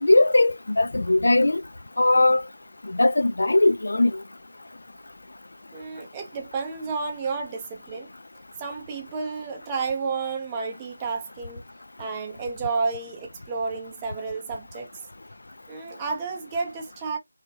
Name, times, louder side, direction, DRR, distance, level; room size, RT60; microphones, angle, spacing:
voice 1, 0.0-1.6 2.0-2.4 2.8-4.2, left 2 dB, 70° left, 0.4 m, -19 dB
voice 2, 5.7-8.1 8.6-11.6 12.0-14.9 15.7-17.2, right 4 dB, 15° right, 0.6 m, -31 dB
3.1 x 2.3 x 4.1 m
figure-of-eight pair, 170°, 0 cm